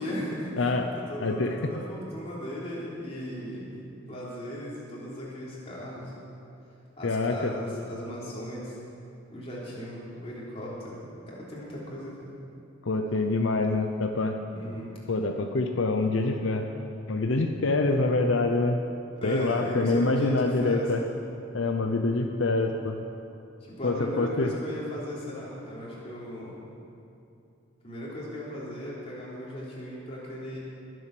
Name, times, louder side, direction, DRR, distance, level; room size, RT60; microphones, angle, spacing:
voice 1, 0.0-6.1 7.0-8.8 9.3-11.0 11.3-12.3 14.5-14.9 19.2-20.9 23.6-26.6 27.8-30.6, equal, 30° left, -6 dB, 3.4 m, -37 dB
voice 2, 0.6-0.9 1.2-1.7 7.0-7.5 12.8-14.4 15.1-16.7 17.1-18.8 19.2-21.0 21.5-23.0 23.8-24.5, left 3 dB, 80° left, 4 dB, 0.7 m, -26 dB
21.0 x 7.8 x 6.0 m, 2.7 s
head